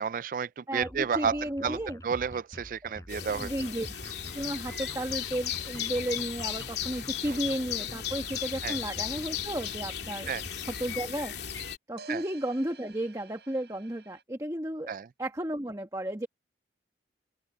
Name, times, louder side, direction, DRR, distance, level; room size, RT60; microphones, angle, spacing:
voice 1, 0.0-3.5 8.6-8.8 10.3-10.4 12.1-12.2 14.9-15.1, right 6 dB, 50° right, 0.3 m, -31 dB
voice 2, 0.7-2.0 2.8-3.9 4.3-10.3 10.6-11.4 11.9-14.9 15.2-16.3, right 1 dB, 20° right, 1.2 m, -33 dB
sound 1, 0.8-11.1, equal, 20° left, 6.9 m, -47 dB
sound 2, 3.1-11.8, left 9 dB, 75° left, 2.5 m, -36 dB
sound 3, 12.0-14.2, right 5 dB, 70° right, 8.0 m, -52 dB
open air
head